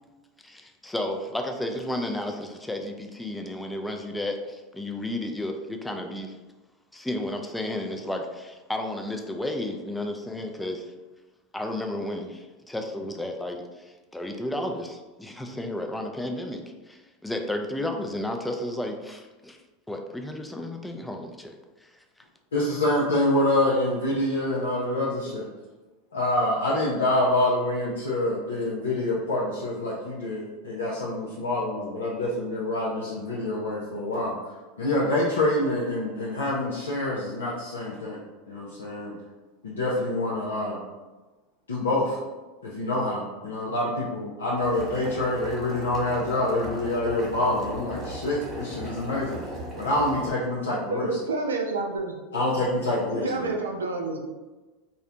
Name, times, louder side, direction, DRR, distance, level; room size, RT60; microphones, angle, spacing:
voice 1, 0.4-6.3 6.9-10.9 11.5-19.6 19.9-21.5, left 1 dB, 5° left, 3 dB, 0.4 m, -32 dB
voice 2, 22.5-25.5 26.1-34.3 34.8-38.2 38.5-39.1 39.6-40.8 41.7-42.2 42.6-49.4 49.8-51.1 52.3-53.5, left 1 dB, 90° left, -5 dB, 0.4 m, -26 dB
Boiling, 44.6-50.3, right 1 dB, 25° right, 1.0 m, -37 dB
voice 3, 50.9-52.2 53.2-54.3, right 3 dB, 90° right, 2 dB, 0.4 m, -29 dB
2.5 x 2.0 x 2.8 m, 1.2 s
hypercardioid pair, 90°, 0 cm